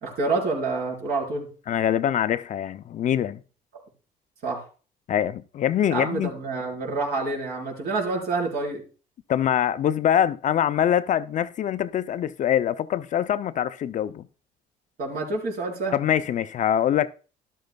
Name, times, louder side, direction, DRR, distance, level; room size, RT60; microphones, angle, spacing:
voice 1, 0.0-1.5 4.4-4.6 5.9-8.8 15.0-16.0, right 3 dB, 65° right, 4.1 m, -27 dB
voice 2, 1.7-3.4 5.1-6.3 9.3-14.3 15.9-17.1, left 10 dB, 45° left, 0.5 m, -24 dB
13.0 x 11.5 x 2.3 m
cardioid pair, 110°, 17 cm